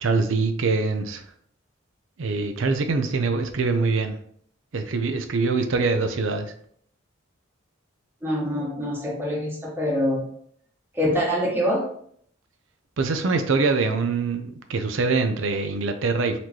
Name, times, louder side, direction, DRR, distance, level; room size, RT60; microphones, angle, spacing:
voice 1, 0.0-1.2 2.2-4.1 4.7-6.5 13.0-16.4, right 4 dB, 70° right, 7 dB, 0.5 m, -24 dB
voice 2, 8.2-10.3 10.9-11.9, equal, 10° right, -4 dB, 1.0 m, -25 dB
4.2 x 3.1 x 2.8 m, 0.64 s
head